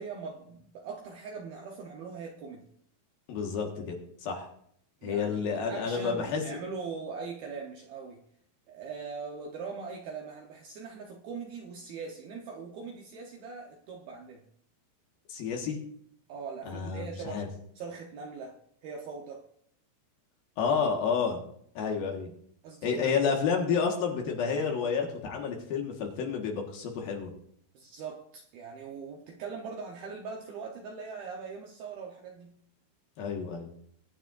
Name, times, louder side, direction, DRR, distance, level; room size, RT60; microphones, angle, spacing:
voice 1, 0.0-2.7 5.0-8.2 8.7-14.4 16.3-17.4 17.8-19.5 22.6-23.2 27.7-32.6, right 5 dB, 80° right, 0 dB, 2.2 m, -41 dB
voice 2, 3.3-4.5 5.0-6.4 15.3-15.8 16.7-17.5 20.6-21.4 21.8-22.3 22.8-27.3 33.2-33.7, left 6 dB, 65° left, 1 dB, 2.7 m, -30 dB
22.0 x 8.9 x 2.6 m, 0.66 s
omnidirectional pair, 5.7 m